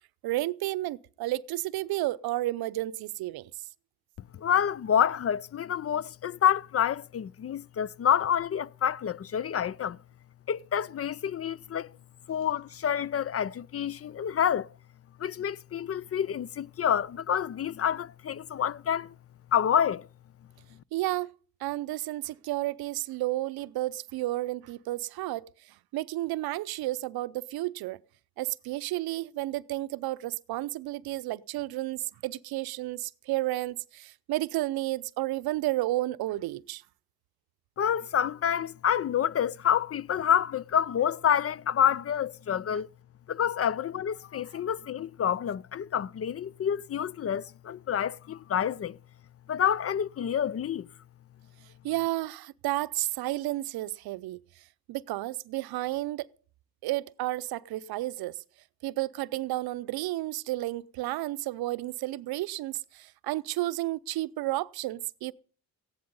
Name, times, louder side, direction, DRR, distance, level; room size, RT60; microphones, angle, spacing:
voice 1, 0.2-3.5 20.9-21.3 21.6-25.5 25.9-28.0 28.4-36.8 51.8-54.4 54.9-56.3 56.8-58.4 58.8-65.3, right 17 dB, 85° right, 0.6 m, -32 dB
voice 2, 4.3-10.0 10.5-11.9 12.3-14.7 15.2-19.1 19.5-20.1 37.8-42.9 43.3-49.0 49.5-50.9, left 9 dB, 40° left, 0.5 m, -28 dB
15.5 x 10.5 x 5.4 m
cardioid pair, 75°, 36 cm